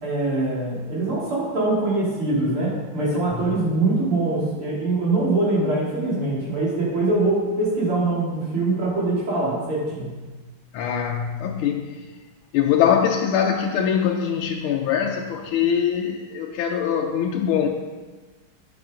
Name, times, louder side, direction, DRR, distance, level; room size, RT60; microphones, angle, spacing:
voice 1, 0.0-10.1, right 2 dB, 90° right, -6 dB, 3.7 m, -23 dB
voice 2, 10.7-12.0 12.5-17.7, left 8 dB, 90° left, 1 dB, 1.5 m, -23 dB
8.7 x 6.9 x 5.0 m, 1.3 s
omnidirectional pair, 2.3 m